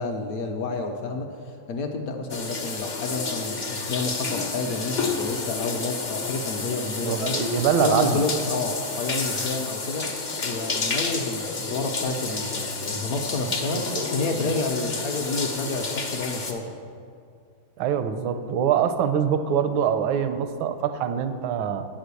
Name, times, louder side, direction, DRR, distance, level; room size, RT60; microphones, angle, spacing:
voice 1, 0.0-7.4 7.8-16.8, left 3 dB, 70° left, 4 dB, 0.8 m, -30 dB
sound 1, 2.3-16.5, left 4 dB, 90° left, 0.4 m, -30 dB
voice 2, 7.0-8.2 13.5-14.0 14.3-14.5 17.8-21.9, right 8 dB, 85° right, 9 dB, 1.4 m, -24 dB
8.3 x 6.4 x 8.2 m, 2.3 s
omnidirectional pair, 2.2 m